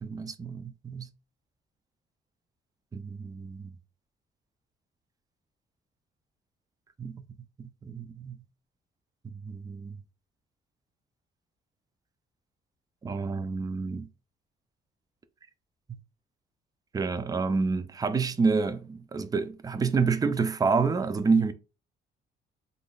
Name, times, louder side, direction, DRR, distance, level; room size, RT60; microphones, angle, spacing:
voice 1, 0.0-1.1 2.9-3.7 7.0-7.3 7.8-8.4 9.4-10.0 13.0-14.1 16.9-21.5, right 4 dB, 20° right, 0.3 m, -28 dB
3.5 x 2.5 x 2.2 m
cardioid pair, 90°, 20 cm